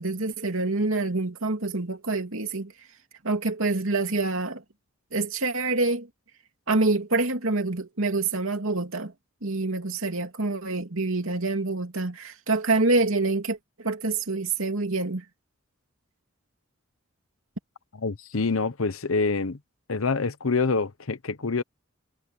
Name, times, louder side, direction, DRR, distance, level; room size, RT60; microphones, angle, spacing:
voice 1, 0.0-2.7 3.2-4.6 5.1-6.1 6.7-9.1 9.4-15.2, right 3 dB, 75° right, 2.7 m, -26 dB
voice 2, 17.9-19.6 19.9-21.6, left 4 dB, 80° left, 1.0 m, -26 dB
head